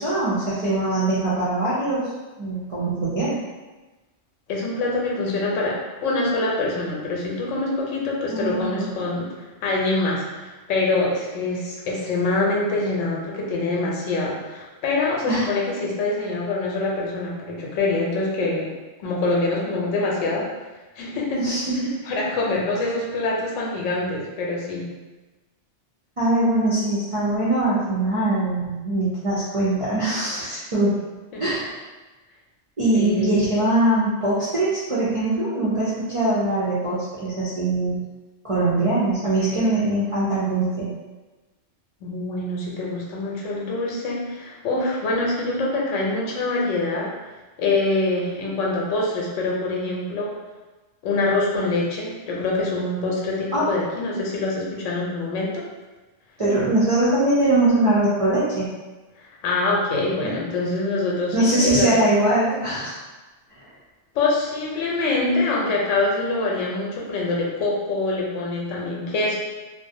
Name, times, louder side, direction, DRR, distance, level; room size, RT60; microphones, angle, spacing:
voice 1, 0.0-2.0 2.4-3.4 8.3-8.9 15.3-15.5 21.4-21.9 26.2-31.0 31.4-31.8 32.8-38.0 38.4-40.9 53.5-53.7 56.4-58.7 60.2-60.3 61.3-63.0 63.6-63.7, right 2 dB, 55° right, -9 dB, 0.3 m, -22 dB
voice 2, 4.5-9.3 9.6-18.7 19.0-20.4 21.0-21.4 22.1-24.9 31.3-31.4 32.9-33.3 42.0-47.1 47.6-50.3 51.0-55.6 59.4-62.0 64.1-69.3, left 2 dB, 90° left, -3 dB, 0.9 m, -25 dB
2.4 x 2.0 x 2.6 m, 1.2 s
omnidirectional pair, 1.2 m